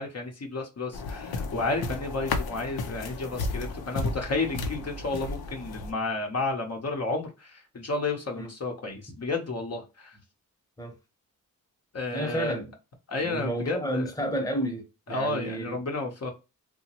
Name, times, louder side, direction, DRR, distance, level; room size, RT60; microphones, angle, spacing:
voice 1, 0.0-10.2 11.9-12.5 13.1-14.1 15.1-16.3, left 3 dB, 45° left, 0.7 m, -31 dB
sound 1, 0.9-5.9, left 3 dB, 85° left, 0.6 m, -33 dB
voice 2, 12.1-12.7 13.2-15.8, equal, 10° left, 0.9 m, -31 dB
2.8 x 2.2 x 2.8 m
cardioid pair, 55°, 36 cm